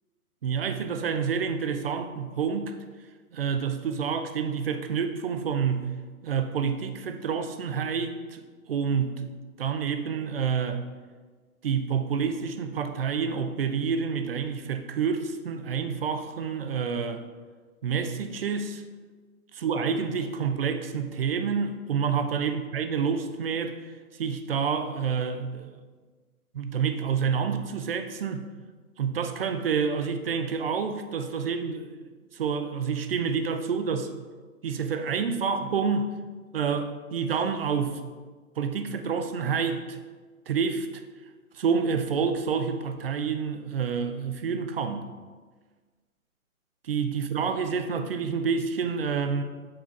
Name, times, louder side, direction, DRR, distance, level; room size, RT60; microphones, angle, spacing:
voice 1, 0.4-2.8 3.3-5.9 6.2-9.3 9.6-10.8 11.6-17.2 17.8-18.8 19.6-23.9 24.2-25.7 26.5-28.5 29.0-34.1 34.6-36.1 36.5-38.0 38.6-40.0 40.5-41.0 41.5-45.1 46.9-49.4, right 6 dB, 40° right, 8 dB, 0.6 m, -28 dB
7.6 x 4.3 x 4.5 m, 1.4 s
hypercardioid pair, 150°, 44 cm